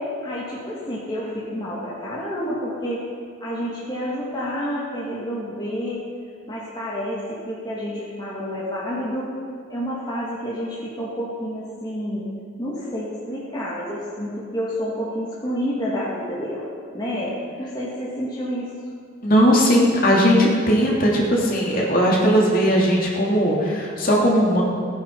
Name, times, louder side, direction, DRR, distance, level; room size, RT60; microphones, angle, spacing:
voice 1, 0.0-3.1 3.4-6.1 6.5-9.3 9.7-12.3 12.6-18.7, equal, 20° left, -6 dB, 2.1 m, -29 dB
voice 2, 19.2-24.6, equal, 45° left, -3 dB, 2.8 m, -18 dB
17.5 x 9.5 x 5.5 m, 2.2 s
head